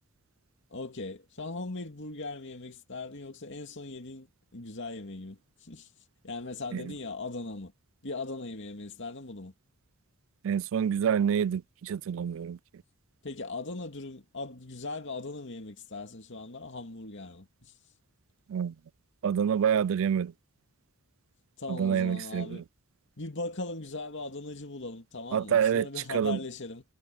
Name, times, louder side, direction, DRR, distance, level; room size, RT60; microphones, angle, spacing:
voice 1, 0.7-4.3 4.5-5.9 6.2-7.7 8.0-9.5 13.2-17.7 21.6-22.6 23.2-26.8, left 3 dB, 55° left, 2.5 m, -39 dB
voice 2, 10.4-12.6 18.5-18.7 19.2-20.3 21.7-22.6 25.3-26.4, right 8 dB, 65° right, 0.3 m, -27 dB
head